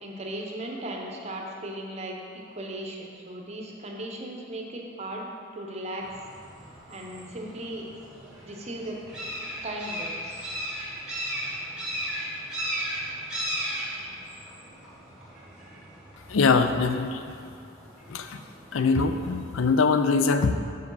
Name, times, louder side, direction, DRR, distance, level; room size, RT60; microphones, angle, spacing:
voice 1, 0.0-5.2 5.5-6.1 6.9-7.9 8.4-9.0 9.6-10.5, right 1 dB, 30° right, 0 dB, 0.7 m, -37 dB
sound 1, 6.0-19.8, equal, 5° right, 1.4 m, -37 dB
voice 2, 16.3-17.3 18.1-18.4 18.7-20.5, left 4 dB, 70° left, 8 dB, 0.4 m, -23 dB
6.1 x 5.0 x 5.4 m, 2.4 s
head